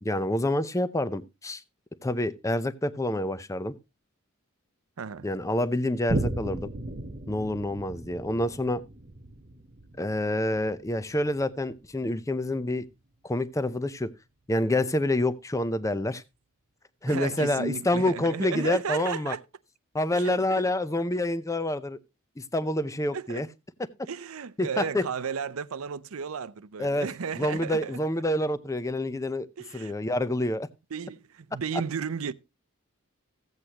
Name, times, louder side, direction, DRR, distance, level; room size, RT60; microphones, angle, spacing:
voice 1, 0.0-1.6 2.0-3.7 5.2-6.7 7.3-8.8 10.0-12.9 13.2-14.1 14.5-16.2 17.0-19.3 19.9-22.0 22.4-23.5 24.6-25.0 26.8-27.1 27.4-29.5 29.7-30.7, left 1 dB, 15° left, 0.6 m, -27 dB
voice 2, 5.0-5.3 17.1-19.4 20.1-20.6 23.1-23.4 24.1-28.0 29.6-30.0 30.9-32.3, right 6 dB, 90° right, 0.6 m, -34 dB
Boom, 6.1-13.0 13.5-13.6, right 2 dB, 40° right, 0.9 m, -36 dB
15.5 x 8.2 x 2.9 m
head